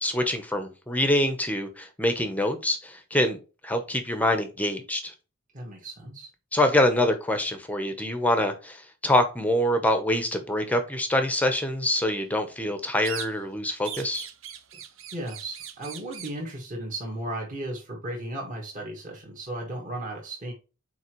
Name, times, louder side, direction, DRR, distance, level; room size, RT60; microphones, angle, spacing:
voice 1, 0.0-3.4 3.6-5.1 6.5-14.3, left 1 dB, 5° left, 0.8 m, -25 dB
voice 2, 5.5-6.3 14.7-14.8 15.1-20.5, right 1 dB, 35° right, 1.7 m, -35 dB
sound 1, 13.0-13.6 13.8-16.4, right 9 dB, 60° right, 0.8 m, -40 dB
7.0 x 4.5 x 3.1 m
head